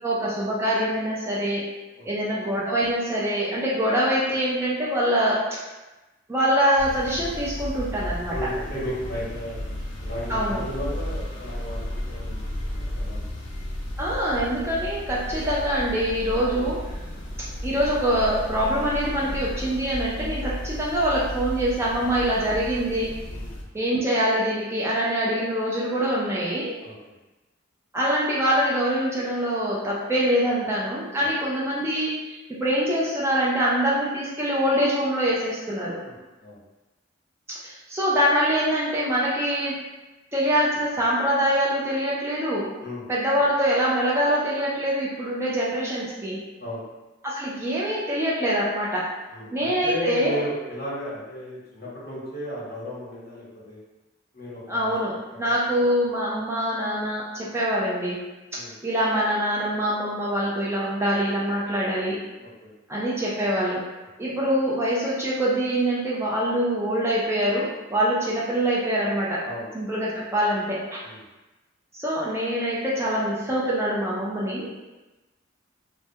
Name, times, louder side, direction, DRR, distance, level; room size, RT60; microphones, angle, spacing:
voice 1, 0.0-1.6 2.1-5.4 6.3-8.4 10.3-10.6 14.0-16.8 17.6-23.1 23.7-26.7 27.9-36.0 37.6-39.8 40.3-42.7 43.1-46.4 47.2-49.1 49.5-50.4 54.7-58.2 58.5-62.2 62.9-63.8 64.2-69.4 69.7-70.8 71.9-74.7, equal, 15° right, -6 dB, 0.4 m, -24 dB
sound 1, 6.8-23.6, equal, 70° left, 0.5 m, -33 dB
voice 2, 8.3-9.6 10.0-12.5 12.8-13.2 23.3-23.5 26.8-26.9 31.2-31.3 36.0-36.1 36.4-36.6 42.8-43.0 46.6-46.8 49.3-53.8 54.3-54.9 55.4-55.8 58.5-58.7 62.4-62.7 69.4-69.7 71.0-71.2, equal, 55° left, -7 dB, 0.9 m, -34 dB
2.2 x 2.1 x 2.7 m, 1.1 s
head